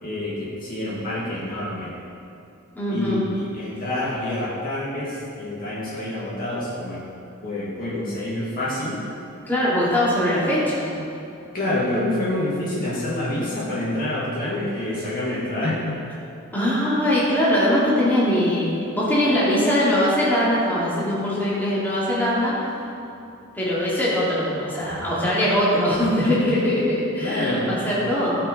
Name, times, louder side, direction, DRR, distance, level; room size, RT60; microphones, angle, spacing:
voice 1, 0.0-1.9 2.9-7.0 7.4-9.0 11.5-16.0 27.2-27.7, left 1 dB, 45° left, -7 dB, 2.4 m, -27 dB
voice 2, 2.7-3.2 9.4-10.9 16.5-22.5 23.5-28.4, left 1 dB, 10° left, -9 dB, 2.8 m, -21 dB
17.5 x 6.1 x 4.3 m, 2.8 s
head